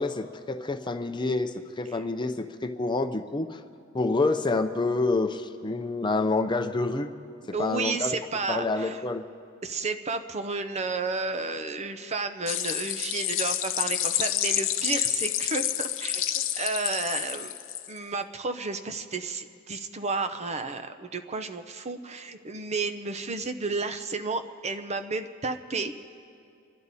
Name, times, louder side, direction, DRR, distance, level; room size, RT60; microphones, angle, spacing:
voice 1, 0.0-3.6 3.9-7.1 7.5-8.1 8.5-9.2, left 3 dB, 20° left, 7 dB, 0.6 m, -28 dB
voice 2, 7.5-9.0 9.6-17.5 17.9-25.9, right 3 dB, 35° right, 9 dB, 0.7 m, -32 dB
sound 1, 12.5-18.0, left 12 dB, 65° left, 0.7 m, -29 dB
29.0 x 11.0 x 4.1 m, 2.6 s
head